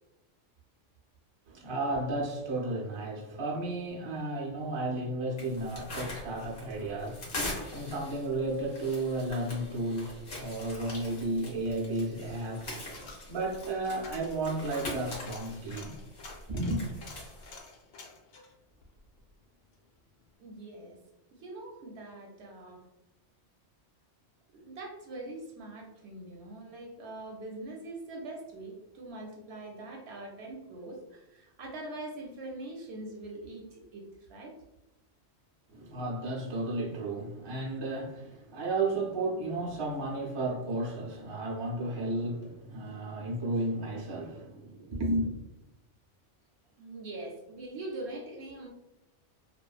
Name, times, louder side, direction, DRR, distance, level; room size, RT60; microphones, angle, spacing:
voice 1, 1.5-12.9 13.3-16.0 16.5-16.8 35.7-45.3, right 2 dB, 40° right, 0.4 m, -33 dB
sound 1, 5.4-17.6, left 1 dB, 60° left, 1.1 m, -42 dB
Coin (dropping), 11.5-19.9 20.2-20.3, left 3 dB, 85° left, 1.0 m, -52 dB
voice 2, 20.4-21.0 21.3-22.8 24.5-34.6 46.8-48.7, right 2 dB, 70° right, 0.8 m, -43 dB
2.6 x 2.3 x 2.3 m
omnidirectional pair, 1.3 m